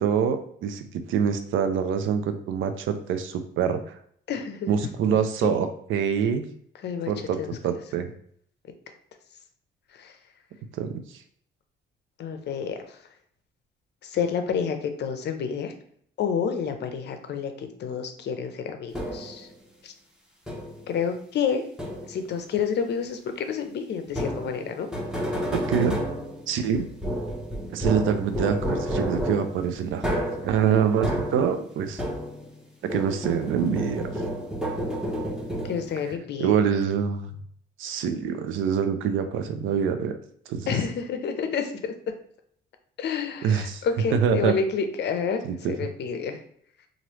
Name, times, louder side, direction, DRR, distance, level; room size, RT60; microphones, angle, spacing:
voice 1, 0.0-4.0 4.7-6.4 7.1-7.4 7.6-8.1 10.7-11.2 25.5-26.0 26.5-26.9 27.7-30.1 30.4-32.0 32.8-34.1 36.4-37.3 37.8-40.2 40.5-40.7 43.4-43.8 44.2-44.5 45.4-45.7, right 7 dB, 80° right, 8 dB, 0.5 m, -25 dB
voice 2, 4.3-4.7 5.1-5.5 6.8-7.6 9.9-10.2 12.2-13.0 14.0-15.7 16.2-19.5 19.8-19.9 20.9-21.7 22.1-24.9 35.6-36.6 40.7-42.0 43.0-45.4 45.7-46.4, left 6 dB, 60° left, 7 dB, 0.5 m, -29 dB
sound 1, 18.9-19.5 20.5-20.9 21.8-22.3 24.1-32.6 32.9-36.0, equal, 5° right, 0.9 m, -31 dB
3.1 x 2.5 x 3.0 m, 0.64 s
cardioid pair, 90°, 20 cm